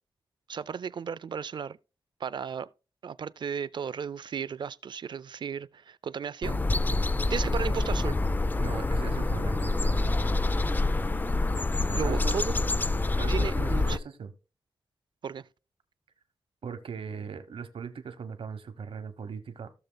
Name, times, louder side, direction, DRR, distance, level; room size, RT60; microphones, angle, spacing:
voice 1, 0.5-1.8 2.2-2.7 3.0-6.6 7.3-8.2 11.9-12.5 13.3-14.0 15.2-15.5, right 7 dB, 55° right, 0.3 m, -34 dB
sound 1, 6.4-14.0, left 2 dB, 20° left, 0.4 m, -27 dB
voice 2, 8.6-10.3 11.9-12.4 13.1-14.3 16.6-19.7, right 6 dB, 75° right, 1.0 m, -39 dB
16.0 x 6.6 x 2.2 m
wide cardioid pair, 100°, 9 cm